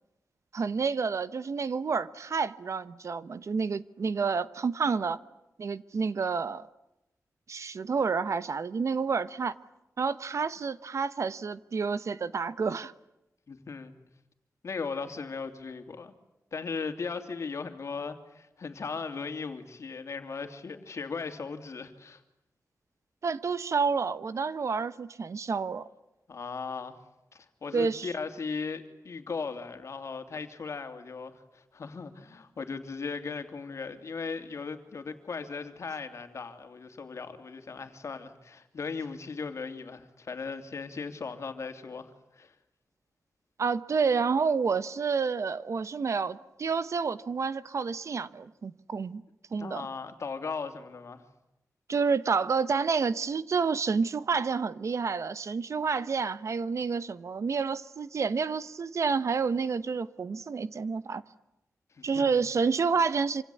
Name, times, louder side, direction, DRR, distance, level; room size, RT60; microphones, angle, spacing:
voice 1, 0.5-5.2 5.6-6.7 7.5-9.5 10.0-12.9 23.2-25.9 27.7-28.1 43.6-49.2 49.5-49.8 51.9-61.2 62.0-63.4, right 5 dB, 55° right, 1.1 m, -29 dB
voice 2, 13.5-13.9 14.6-16.1 16.5-22.2 26.3-27.0 27.3-42.5 49.6-51.2 61.9-62.4, left 5 dB, 55° left, 2.9 m, -37 dB
27.0 x 26.5 x 8.4 m
wide cardioid pair, 175°, 6 cm